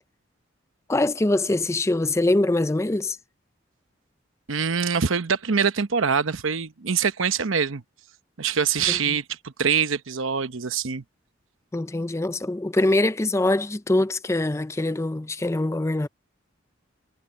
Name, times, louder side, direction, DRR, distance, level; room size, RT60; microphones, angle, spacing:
voice 1, 0.9-3.2 8.9-9.2 11.7-16.1, left 2 dB, 15° left, 0.4 m, -23 dB
voice 2, 4.5-7.8 8.4-11.0, right 6 dB, 80° right, 0.9 m, -24 dB
head